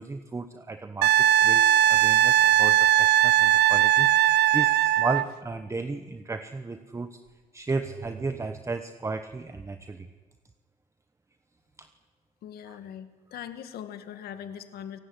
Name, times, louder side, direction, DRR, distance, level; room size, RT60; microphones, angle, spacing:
voice 1, 0.0-7.2 7.5-10.1 11.8-11.9 12.7-12.8, right 3 dB, 15° right, 9 dB, 1.2 m, -34 dB
Wind instrument woodwind instrument, 1.0-5.3 7.9-8.1, right 12 dB, 80° right, 0.8 m, -19 dB
voice 2, 12.4-15.0, left 9 dB, 65° left, 9 dB, 2.2 m, -41 dB
29.5 x 17.5 x 10.0 m, 1.4 s
cardioid pair, 110°, 17 cm